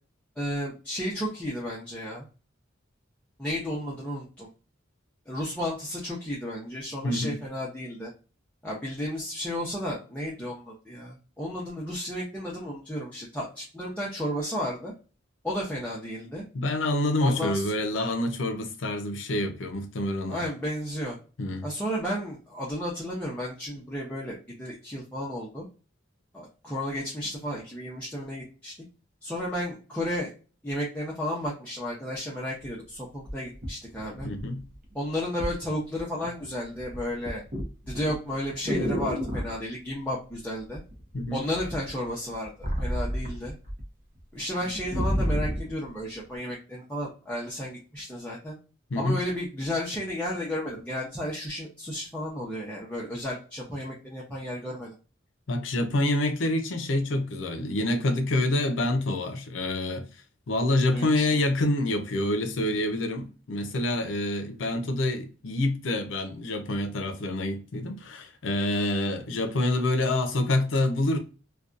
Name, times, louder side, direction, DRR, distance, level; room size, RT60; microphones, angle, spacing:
voice 1, 0.4-2.2 3.4-4.5 5.3-8.1 8.6-14.9 15.4-16.4 17.2-17.7 20.3-21.2 21.6-25.7 26.3-28.7 29.2-30.3 30.6-34.3 34.9-37.4 37.9-40.8 41.3-43.5 44.3-48.6 49.0-54.9 60.9-61.2, equal, 5° left, 0.6 m, -33 dB
voice 2, 7.0-7.4 16.5-20.4 21.4-21.7 34.2-34.6 41.1-41.4 48.9-49.2 55.5-60.1 60.5-71.2, left 1 dB, 70° left, 0.5 m, -27 dB
sound 1, 32.7-32.8 33.3-34.7 35.4-35.6 36.0-36.4 36.7-39.6 40.7-41.2 41.5-43.8 44.2-44.3 44.6-45.7 46.4-46.5, equal, 40° right, 0.7 m, -30 dB
2.6 x 2.2 x 2.3 m
head